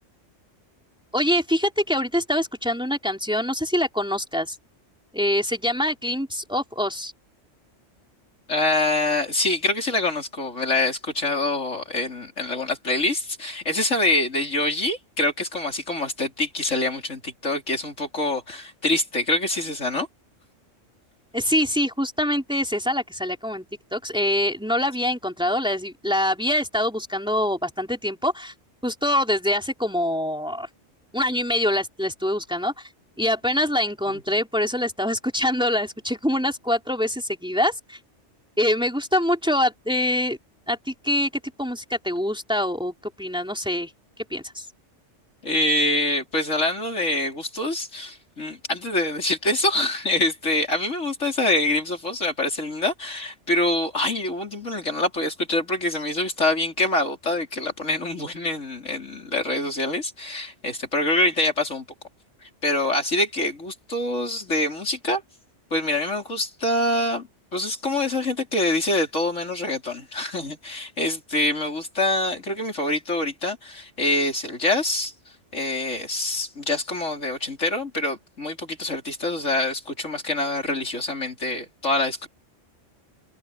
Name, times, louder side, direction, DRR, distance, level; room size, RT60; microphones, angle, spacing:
voice 1, 1.1-4.6 5.1-7.1 21.3-28.5 28.8-30.7 31.1-32.9 33.2-38.0 38.6-40.4 40.7-41.3 41.6-43.9 44.3-44.7, left 1 dB, 5° right, 3.7 m, -24 dB
voice 2, 8.5-20.1 34.3-34.4 45.4-61.8 62.6-65.2 65.7-75.1 75.5-82.3, left 2 dB, 75° left, 4.8 m, -25 dB
omnidirectional pair, 1.3 m